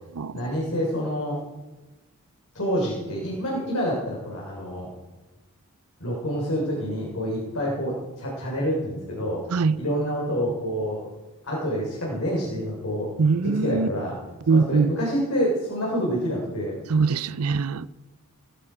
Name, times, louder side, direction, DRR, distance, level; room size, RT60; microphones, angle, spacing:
voice 1, 0.3-1.4 2.5-4.9 6.0-9.4 9.8-11.0 11.4-13.1 13.4-14.2 14.5-16.8, equal, 70° left, 4.4 m, -27 dB
voice 2, 13.2-13.9 14.5-14.9 16.9-17.9, right 4 dB, 80° right, 0.6 m, -22 dB
17.0 x 16.0 x 5.0 m
head